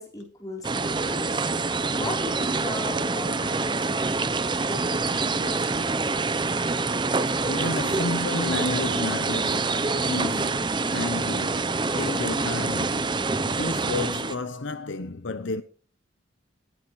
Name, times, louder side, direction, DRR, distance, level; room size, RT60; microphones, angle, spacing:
voice 1, 0.0-6.1, left 1 dB, 20° left, 4.3 m, -39 dB
sound 1, 0.6-14.4, right 3 dB, 25° right, 0.6 m, -26 dB
voice 2, 7.1-15.6, left 3 dB, 85° left, 0.8 m, -32 dB
18.5 x 9.4 x 3.1 m
head